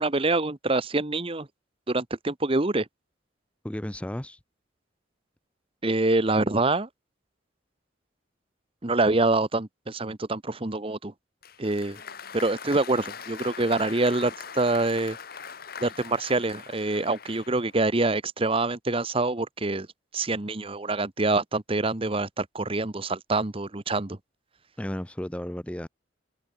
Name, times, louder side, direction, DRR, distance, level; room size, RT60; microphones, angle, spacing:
voice 1, 0.0-1.5 1.9-2.9 5.8-6.9 8.8-11.1 11.6-12.0 12.3-15.2 15.8-19.9 20.1-24.2, right 2 dB, 30° right, 1.1 m, -26 dB
voice 2, 3.6-4.4 24.8-25.9, left 1 dB, 5° left, 0.5 m, -33 dB
Applause, 11.4-17.8, left 6 dB, 50° left, 1.6 m, -42 dB
head